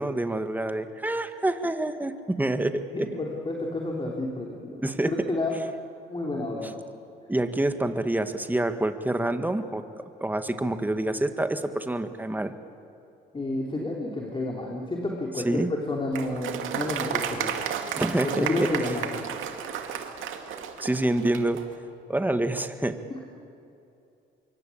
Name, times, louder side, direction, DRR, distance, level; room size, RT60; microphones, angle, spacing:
voice 1, 0.0-3.1 4.8-5.1 6.6-6.7 7.3-9.8 10.2-12.5 15.4-15.7 18.0-18.7 20.8-21.7 22.1-23.0, right 1 dB, 10° right, 8 dB, 1.7 m, -27 dB
voice 2, 2.9-5.5 6.1-6.8 13.3-17.6 18.4-19.1 23.1-23.2, left 2 dB, 25° left, -2 dB, 3.5 m, -30 dB
Applause, 16.1-21.7, right 8 dB, 80° right, 2.3 m, -32 dB
25.5 x 23.5 x 8.7 m, 2.7 s
cardioid pair, 90°, 20 cm